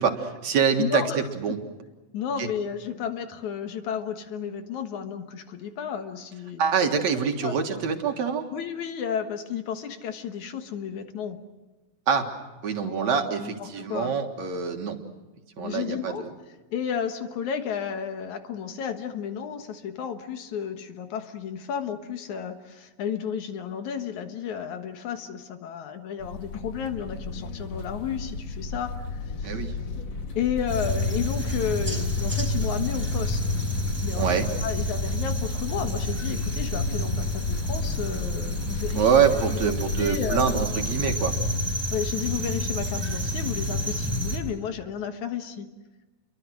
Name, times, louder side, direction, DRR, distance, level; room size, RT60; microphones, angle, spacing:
voice 1, 0.0-1.6 2.4-2.5 6.6-8.4 12.1-12.3 12.6-15.0 15.6-16.3 29.4-29.7 34.2-34.5 38.9-41.3, right 6 dB, 60° right, 4 dB, 2.8 m, -25 dB
voice 2, 0.8-1.6 2.1-6.7 7.4-7.6 8.5-11.4 12.8-14.1 15.6-16.3 16.7-29.6 30.4-33.6 34.0-39.2 39.5-39.7 40.0-40.6 41.9-45.7, left 8 dB, 70° left, 7 dB, 2.7 m, -32 dB
sound 1, 26.2-41.1, left 3 dB, 45° left, 2.0 m, -34 dB
sound 2, 30.7-44.4, left 1 dB, 5° left, 4.1 m, -29 dB
29.5 x 23.5 x 6.3 m, 1.2 s
omnidirectional pair, 3.7 m